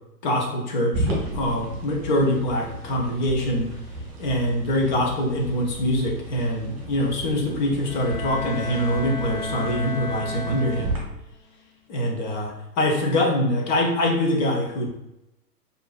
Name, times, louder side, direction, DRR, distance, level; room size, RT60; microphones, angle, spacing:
voice 1, 0.2-3.7 4.2-11.0 11.9-14.9, left 1 dB, 30° left, 0 dB, 0.7 m, -24 dB
sound 1, 0.9-11.0, right 1 dB, 30° right, 1.5 m, -34 dB
Bowed string instrument, 7.8-11.3, left 3 dB, 55° left, 1.0 m, -33 dB
4.6 x 2.6 x 2.4 m, 0.90 s
figure-of-eight pair, 115°, 48 cm